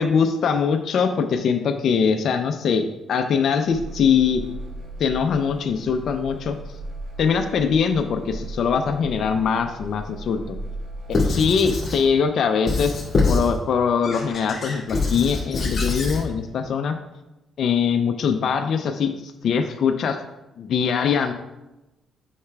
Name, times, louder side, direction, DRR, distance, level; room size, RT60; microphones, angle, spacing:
voice 1, 0.0-4.4 5.0-6.5 7.2-10.6 11.2-12.9 13.3-16.9 17.6-19.1 19.4-20.2 20.6-21.3, left 6 dB, 65° left, 6 dB, 0.5 m, -22 dB
sound 1, 3.7-11.5, right 1 dB, 80° right, 1.7 m, -37 dB
Squeak / Writing, 11.1-12.0 12.7-13.5 14.0-16.2, left 3 dB, 40° left, 2.1 m, -24 dB
8.3 x 5.7 x 2.3 m, 0.99 s
cardioid pair, 90°, 0 cm